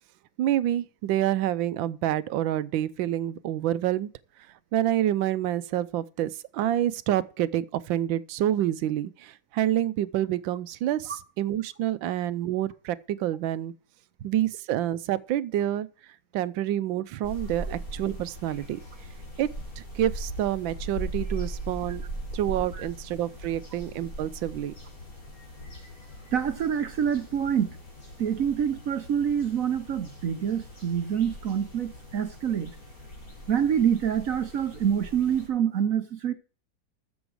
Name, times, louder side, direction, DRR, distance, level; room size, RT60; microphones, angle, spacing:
voice 1, 0.4-4.1 4.7-13.7 14.2-15.9 16.3-18.8 19.4-19.5 19.8-22.0 22.3-24.7, right 12 dB, 75° right, 1.3 m, -28 dB
sound 1, 17.2-35.5, right 1 dB, 45° left, 4.2 m, -40 dB
voice 2, 26.3-27.8 28.2-32.7 33.5-36.3, right 8 dB, 60° right, 0.9 m, -26 dB
13.5 x 7.1 x 4.8 m
omnidirectional pair, 2.2 m